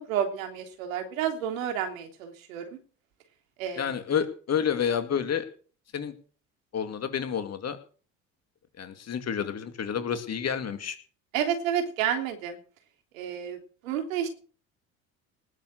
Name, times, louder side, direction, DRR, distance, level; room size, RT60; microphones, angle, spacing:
voice 1, 0.0-2.6 3.6-3.9 11.3-12.6 13.1-13.6 13.8-14.3, right 9 dB, 75° right, 6 dB, 3.3 m, -30 dB
voice 2, 3.8-5.5 5.9-6.1 6.7-7.8 8.8-11.0, left 8 dB, 40° left, 9 dB, 2.5 m, -29 dB
19.0 x 7.6 x 6.6 m, 0.40 s
hypercardioid pair, 70°, 40 cm